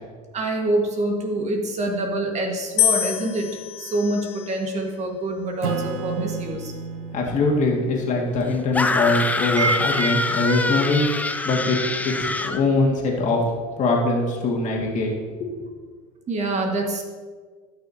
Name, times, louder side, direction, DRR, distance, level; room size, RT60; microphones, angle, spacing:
voice 1, 0.3-3.5 3.8-6.7 9.6-10.1 10.5-10.6 16.3-17.0, right 2 dB, 40° right, 2 dB, 1.7 m, -25 dB
sound 1, 2.8-5.0 5.8-6.3, left 12 dB, 70° left, 0.7 m, -27 dB
Acoustic guitar / Strum, 5.6-10.6, right 5 dB, 85° right, 0.7 m, -35 dB
voice 2, 7.1-11.1 11.4-11.8 12.0-13.4 13.8-15.1 15.4-15.5, left 3 dB, 45° left, -1 dB, 2.0 m, -22 dB
sound 2, 8.7-12.6, left 2 dB, 10° left, 0.6 m, -25 dB
14.0 x 6.3 x 2.8 m, 1.5 s
supercardioid pair, 90°, 18 cm